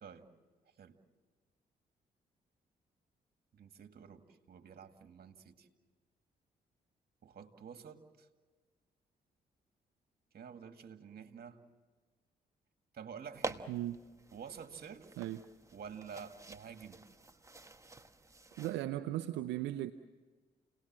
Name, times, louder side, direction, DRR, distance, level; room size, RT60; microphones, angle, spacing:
voice 1, 3.5-5.7 7.2-8.3 10.3-11.6 12.9-13.7 14.3-15.1 15.7-17.0, right 7 dB, 60° right, 6 dB, 2.1 m, -49 dB
sound 1, 13.3-18.8, right 2 dB, 15° right, 1.3 m, -47 dB
voice 2, 18.6-19.9, right 14 dB, 85° right, 8 dB, 0.6 m, -37 dB
29.5 x 19.0 x 7.5 m, 1.4 s
supercardioid pair, 50°, 18 cm